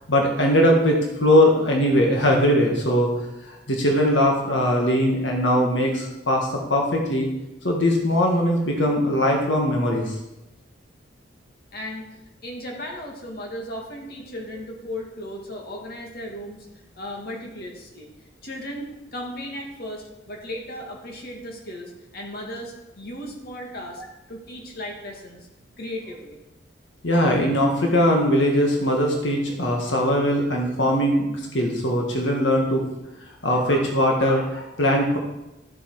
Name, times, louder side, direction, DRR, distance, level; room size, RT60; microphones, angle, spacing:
voice 1, 0.1-3.1 3.5-7.3 7.6-10.2 27.0-32.8 33.4-35.2, equal, 85° left, 0 dB, 1.8 m, -20 dB
voice 2, 11.7-12.2 12.4-16.7 16.9-18.1 18.4-24.0 24.3-25.5 25.8-26.4, left 1 dB, 60° left, 0 dB, 2.1 m, -36 dB
13.0 x 7.4 x 4.8 m, 0.94 s
head